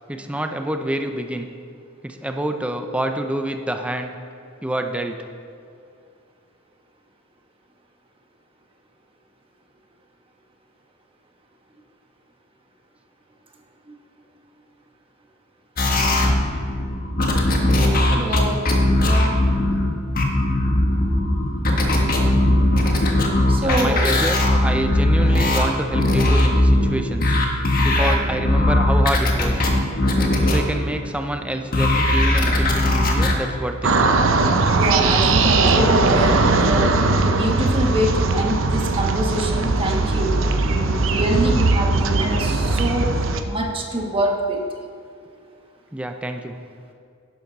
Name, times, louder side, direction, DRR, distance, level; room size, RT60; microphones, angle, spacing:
voice 1, 0.1-1.5 2.0-4.1 4.6-5.2 18.1-18.4 23.6-27.4 27.8-29.7 30.4-34.1 45.9-46.5, right 1 dB, 5° right, 5 dB, 0.5 m, -27 dB
sound 1, 15.8-31.3 31.7-33.3, left 1 dB, 45° left, 1.3 m, -19 dB
voice 2, 18.2-18.6 19.0-19.4 23.5-24.2 27.8-28.2 34.7-44.6, right 1 dB, 25° right, 1 dB, 1.3 m, -25 dB
sound 2, 33.8-43.4, right 3 dB, 70° right, 0.7 m, -19 dB
11.5 x 10.5 x 4.0 m, 2.4 s
head